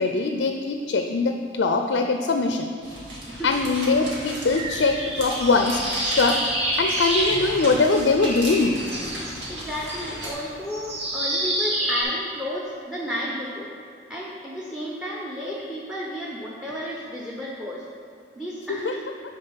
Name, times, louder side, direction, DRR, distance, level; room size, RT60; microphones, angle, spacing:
voice 1, 0.0-2.7 3.4-6.4 6.8-8.8 18.7-18.9, left 3 dB, 80° left, 5 dB, 0.4 m, -22 dB
sound 1, 2.8-10.3, right 1 dB, 90° right, 2.0 m, -36 dB
sound 2, 4.5-12.0, right 1 dB, 35° right, 1.5 m, -28 dB
voice 2, 9.5-13.7 14.1-17.9 18.4-19.0, equal, 5° right, -3 dB, 0.7 m, -32 dB
10.0 x 3.8 x 5.6 m, 2.4 s
head